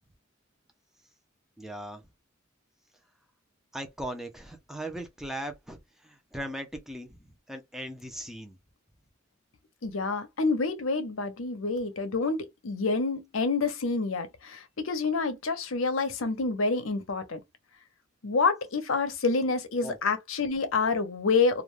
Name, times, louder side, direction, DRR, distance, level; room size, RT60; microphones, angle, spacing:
voice 1, 1.6-2.0 3.7-8.6 19.8-20.0, right 1 dB, ahead, 0.5 m, -39 dB
voice 2, 9.8-17.4 18.2-21.6, left 4 dB, 75° left, 0.7 m, -28 dB
2.4 x 2.2 x 3.1 m
head